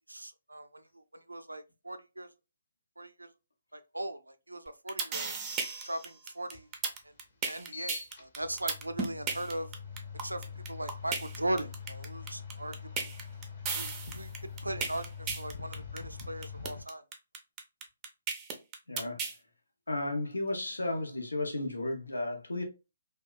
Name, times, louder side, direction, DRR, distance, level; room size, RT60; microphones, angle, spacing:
voice 1, 0.1-2.3 3.0-3.3 3.7-5.3 5.8-6.7 7.0-7.1 7.4-9.7 10.2-13.1 13.7-14.3 14.6-17.0, right 1 dB, 90° right, 0.3 m, -39 dB
sound 1, 4.7-19.4, right 5 dB, 20° right, 0.5 m, -35 dB
sound 2, 6.5-6.6 7.4-16.8, left 6 dB, 50° left, 0.8 m, -44 dB
voice 2, 18.9-19.2 19.9-22.6, left 2 dB, 80° left, 0.7 m, -33 dB
2.8 x 2.2 x 2.2 m
figure-of-eight pair, 135°, 0 cm